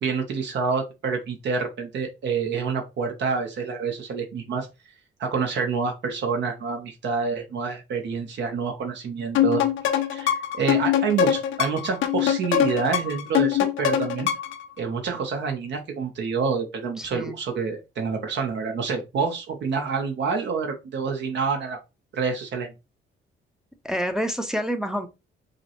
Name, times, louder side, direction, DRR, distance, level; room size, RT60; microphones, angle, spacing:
voice 1, 0.0-4.7 5.2-14.3 14.8-21.8 22.1-22.7, right 5 dB, 65° right, 0.9 m, -27 dB
sound 1, 9.3-14.6, left 10 dB, 75° left, 0.6 m, -23 dB
voice 2, 17.0-17.4 23.8-25.1, equal, 5° right, 0.6 m, -28 dB
5.0 x 2.1 x 2.9 m
cardioid pair, 90°, 20 cm